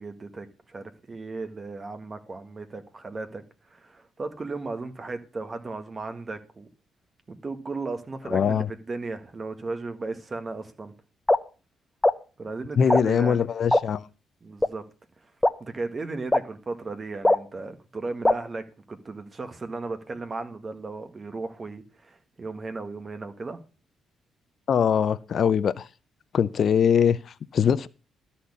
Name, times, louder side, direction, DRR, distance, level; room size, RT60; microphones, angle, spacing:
voice 1, 0.0-3.4 3.7-6.7 7.3-10.9 12.4-13.4 14.4-14.8 15.6-23.6, right 3 dB, 30° right, 1.6 m, -35 dB
voice 2, 8.3-8.7 12.8-14.1 24.7-25.9 26.3-27.9, left 7 dB, 55° left, 0.6 m, -22 dB
sound 1, 11.3-11.4 12.0-12.1 12.9-13.0 13.7-13.8 14.6-14.7 15.4-15.5 16.3-16.4 17.2-17.4 18.2-18.3, left 1 dB, 10° left, 0.8 m, -18 dB
13.0 x 4.3 x 8.4 m
cardioid pair, 90°, 0 cm